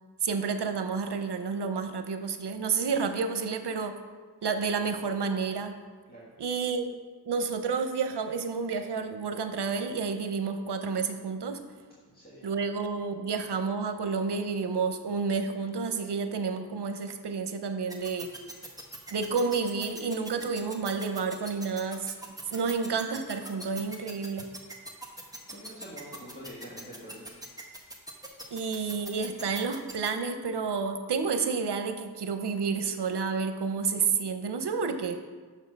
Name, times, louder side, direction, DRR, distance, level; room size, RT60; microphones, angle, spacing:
voice 1, 0.2-4.0 4.4-5.8 6.4-6.9 7.2-11.6 12.4-18.3 19.1-22.1 22.5-24.5 28.5-35.2, right 5 dB, 85° right, 7 dB, 0.8 m, -30 dB
voice 2, 12.0-12.4 25.5-27.4 34.7-34.9, equal, 25° left, -7 dB, 1.7 m, -46 dB
sound 1, 17.9-30.1, right 1 dB, 10° right, 1.3 m, -41 dB
6.6 x 6.4 x 5.2 m, 1.5 s
wide cardioid pair, 65°, 40 cm